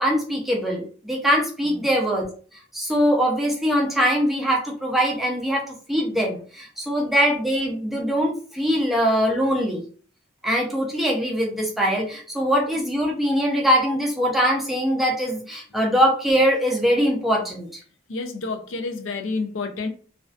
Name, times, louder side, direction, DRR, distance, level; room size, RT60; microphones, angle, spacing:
voice 1, 0.0-2.3 2.7-9.8 10.4-17.8, equal, ahead, 0.5 m, -22 dB
voice 2, 18.1-19.9, left 3 dB, 75° left, 0.4 m, -29 dB
2.4 x 2.3 x 2.3 m
head